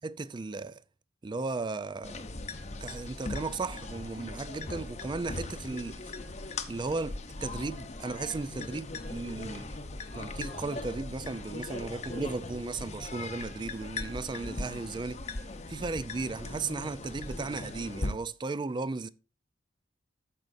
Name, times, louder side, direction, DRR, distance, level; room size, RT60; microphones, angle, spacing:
voice 1, 0.0-0.8 1.2-2.2 2.8-6.1 6.7-9.8 10.1-15.2 15.7-19.1, right 3 dB, 25° right, 0.3 m, -35 dB
sound 1, 2.0-18.1, left 2 dB, 35° left, 0.8 m, -39 dB
14.0 x 5.2 x 2.6 m
head